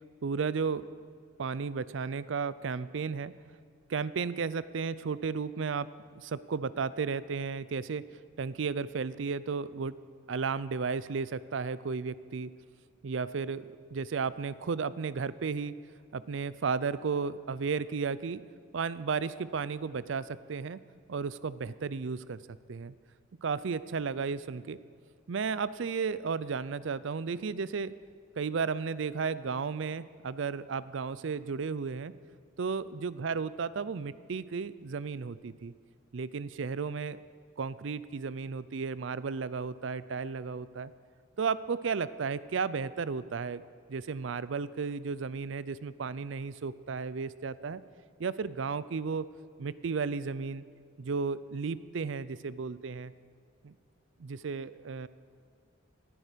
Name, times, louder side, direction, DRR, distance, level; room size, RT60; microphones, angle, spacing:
voice 1, 0.2-0.8 1.4-3.3 3.9-5.9 6.2-8.0 8.4-9.9 10.3-12.5 13.0-15.7 16.1-18.4 18.7-20.8 21.1-22.4 22.7-22.9 23.4-24.8 25.3-27.9 28.4-32.1 32.6-35.7 36.1-37.2 37.6-40.9 41.4-43.6 43.9-47.8 48.2-49.3 49.6-50.6 51.0-53.1 53.6-53.7 54.2-55.1, right 5 dB, 70° right, 17 dB, 0.5 m, -33 dB
19.0 x 11.0 x 5.1 m, 2.2 s
head